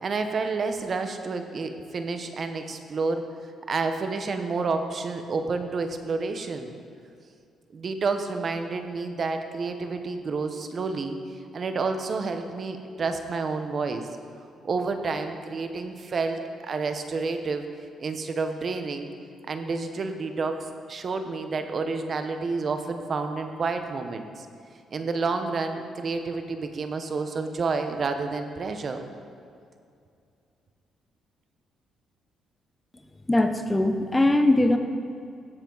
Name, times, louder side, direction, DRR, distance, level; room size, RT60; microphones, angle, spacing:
voice 1, 0.0-3.2 3.7-6.7 7.7-11.2 11.5-14.1 14.6-17.6 18.0-19.1 19.5-20.6 20.9-24.5 24.9-29.0, right 4 dB, 45° right, 7 dB, 0.9 m, -29 dB
voice 2, 33.3-34.8, left 1 dB, 15° left, 7 dB, 0.7 m, -21 dB
16.5 x 7.2 x 4.0 m, 2.4 s
cardioid pair, 90°, 0 cm